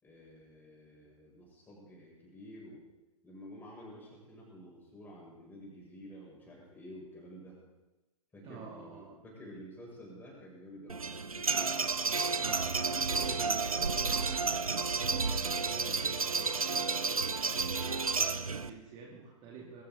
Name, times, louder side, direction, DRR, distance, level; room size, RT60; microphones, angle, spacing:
voice 1, 0.0-2.8 3.2-7.6 8.3-12.7, equal, 10° left, -3 dB, 6.7 m, -51 dB
voice 2, 8.4-9.2 12.4-17.2 17.7-19.8, right 5 dB, 30° right, -2 dB, 2.3 m, -48 dB
sound 1, 10.9-18.7, right 4 dB, 80° right, 0.8 m, -31 dB
22.5 x 13.5 x 4.0 m, 1.1 s
figure-of-eight pair, 110°, 18 cm